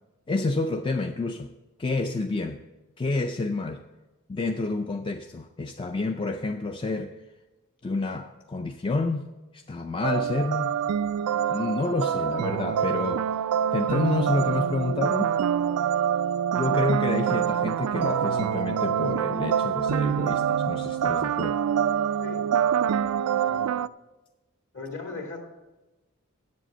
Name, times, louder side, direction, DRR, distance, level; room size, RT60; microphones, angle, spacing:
voice 1, 0.3-1.5 1.8-2.6 3.0-3.8 4.3-7.2 7.8-10.7 11.5-13.4 13.7-15.3 16.6-21.6, left 3 dB, 25° left, 0.3 m, -29 dB
sound 1, 10.0-23.9, right 8 dB, 90° right, 0.3 m, -25 dB
voice 2, 23.4-23.7 24.7-25.4, left 3 dB, 55° left, 2.2 m, -38 dB
8.4 x 7.5 x 7.7 m
head